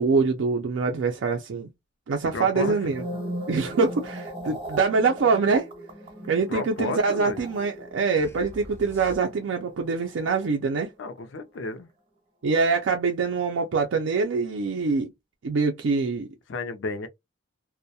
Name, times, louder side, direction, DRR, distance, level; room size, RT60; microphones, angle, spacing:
voice 1, 0.0-1.7 2.1-3.0 3.5-5.7 6.3-10.9 12.4-15.1 15.4-16.3, right 4 dB, 85° right, 0.4 m, -24 dB
voice 2, 2.2-3.0 6.5-7.5 11.0-11.9 16.5-17.1, left 3 dB, 80° left, 0.4 m, -32 dB
sound 1, 2.7-11.1 11.4-11.7, equal, 30° right, 0.7 m, -39 dB
sound 2, 8.2-9.7, left 1 dB, 10° left, 0.3 m, -45 dB
2.2 x 2.1 x 2.7 m
head